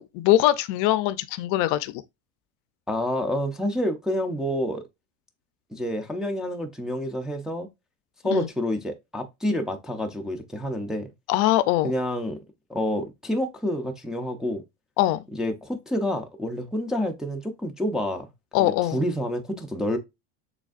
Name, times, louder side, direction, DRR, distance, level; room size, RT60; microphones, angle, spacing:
voice 1, 0.0-2.0 8.3-8.5 11.3-11.9 15.0-15.2 18.5-19.0, left 14 dB, 60° left, 0.5 m, -22 dB
voice 2, 2.9-4.8 5.7-7.7 8.2-11.1 11.8-12.4 12.7-14.6 15.3-18.3 18.6-20.0, equal, ahead, 0.4 m, -28 dB
6.1 x 3.4 x 2.4 m
cardioid pair, 145°, 34 cm